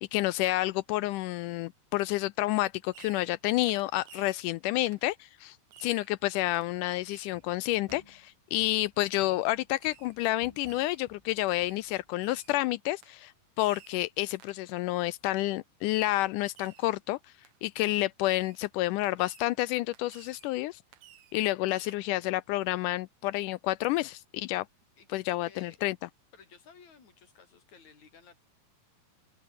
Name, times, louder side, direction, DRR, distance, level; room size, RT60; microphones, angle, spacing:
voice 1, 0.0-13.3 13.6-17.2 17.6-20.8 21.3-24.7 25.1-26.0, left 17 dB, 80° left, 1.9 m, -29 dB
Fireworks, 2.9-3.4 3.7-4.5 4.9-5.1 5.7-6.1 6.5-6.7 7.1-7.4 7.9-8.0 9.1-9.4 9.8-10.2 10.6-11.0 11.5-11.9 12.2-12.6 13.0-13.2 13.6-14.0 14.4-14.7 15.9-16.3 16.5-16.9 17.4-17.6 18.2-18.6 19.0-19.6 19.9-20.5 20.9-21.4 21.7-22.0, right 11 dB, 60° right, 2.5 m, -55 dB
sound 1, 7.3-8.3 8.6-9.6 9.9-12.1, left 1 dB, 10° left, 5.2 m, -57 dB
voice 2, 25.0-25.8 26.3-28.4, left 6 dB, 55° left, 5.5 m, -55 dB
omnidirectional pair, 4.0 m